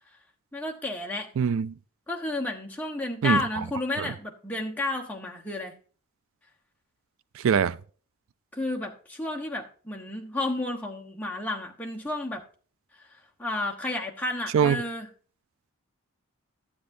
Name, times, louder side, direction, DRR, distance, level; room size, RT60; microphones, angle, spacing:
voice 1, 0.5-1.3 2.1-5.7 8.5-12.4 13.0-15.1, left 2 dB, 5° left, 1.0 m, -32 dB
voice 2, 1.4-1.7 3.2-3.4 4.0-4.1 7.4-7.8 14.5-14.8, right 7 dB, 60° right, 0.3 m, -22 dB
12.0 x 8.5 x 2.6 m
head